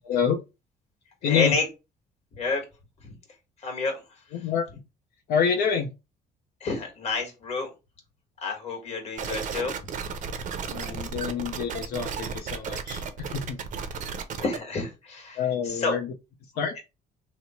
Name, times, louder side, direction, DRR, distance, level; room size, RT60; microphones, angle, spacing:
voice 1, 0.0-0.4 1.2-1.5 4.3-4.6 5.3-5.9 10.7-13.6 15.4-16.1 16.6-16.7, left 7 dB, 70° left, 1 dB, 0.7 m, -27 dB
voice 2, 1.2-1.7 2.3-2.6 3.0-3.2 3.6-4.0 4.3-4.4 6.6-7.7 8.4-9.8 14.4-16.0, left 4 dB, 40° left, 1 dB, 1.4 m, -29 dB
sound 1, 9.2-14.6, right 6 dB, 50° right, 0.6 m, -34 dB
3.0 x 2.0 x 4.1 m, 0.27 s
cardioid pair, 110°, 17 cm